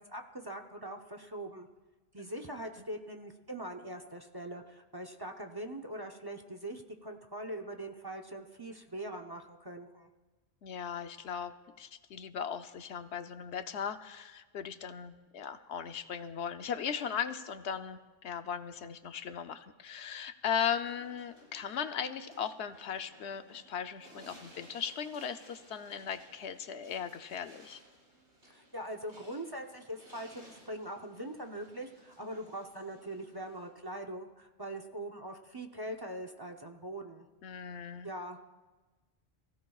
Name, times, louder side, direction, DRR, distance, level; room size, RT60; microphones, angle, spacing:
voice 1, 0.0-1.7 2.1-10.1 28.5-37.3 38.0-38.4, right 1 dB, 25° right, 4 dB, 0.8 m, -42 dB
voice 2, 10.6-27.8 37.4-38.1, left 7 dB, 80° left, 9 dB, 1.0 m, -38 dB
sound 1, 20.7-33.7, equal, 85° right, 6.1 m, -59 dB
27.5 x 16.0 x 2.4 m, 1.2 s
omnidirectional pair, 1.1 m